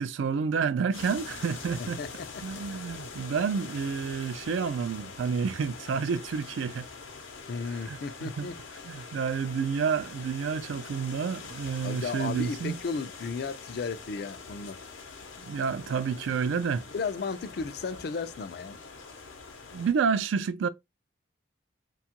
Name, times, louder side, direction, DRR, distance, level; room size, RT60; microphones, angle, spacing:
voice 1, 0.0-2.0 2.4-6.9 7.9-8.5 8.8-12.7 15.4-16.8 19.7-20.7, right 6 dB, 75° right, 0.3 m, -29 dB
sound 1, 0.9-19.9, left 5 dB, 75° left, 0.7 m, -44 dB
voice 2, 1.8-2.3 7.5-8.6 11.8-14.8 16.9-18.8, left 4 dB, 50° left, 0.3 m, -34 dB
2.8 x 2.3 x 2.8 m
head